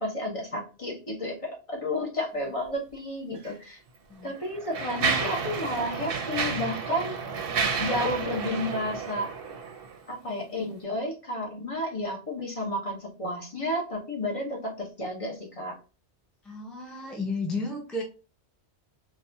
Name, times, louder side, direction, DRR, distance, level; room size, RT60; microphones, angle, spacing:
voice 1, 0.0-3.8 4.2-7.2 7.8-9.3 10.1-15.7, left 1 dB, 30° left, -1 dB, 0.9 m, -31 dB
Mechanisms, 3.4-3.5 4.2-10.0, right 5 dB, 60° right, 0.8 m, -31 dB
voice 2, 16.4-18.0, left 2 dB, ahead, 1 dB, 0.4 m, -33 dB
4.0 x 2.4 x 2.6 m, 0.34 s
omnidirectional pair, 1.1 m